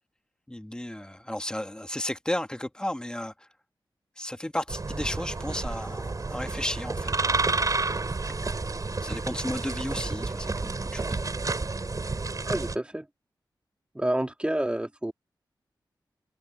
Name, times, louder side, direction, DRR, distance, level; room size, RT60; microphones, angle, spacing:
voice 1, 0.5-3.5 4.2-7.5 9.0-11.2, left 1 dB, 10° left, 1.7 m, -34 dB
sound 1, 4.7-12.7, right 3 dB, 45° right, 4.9 m, -30 dB
voice 2, 12.5-13.1 13.9-15.1, right 1 dB, 15° right, 2.3 m, -28 dB
wide cardioid pair, 70°, 8 cm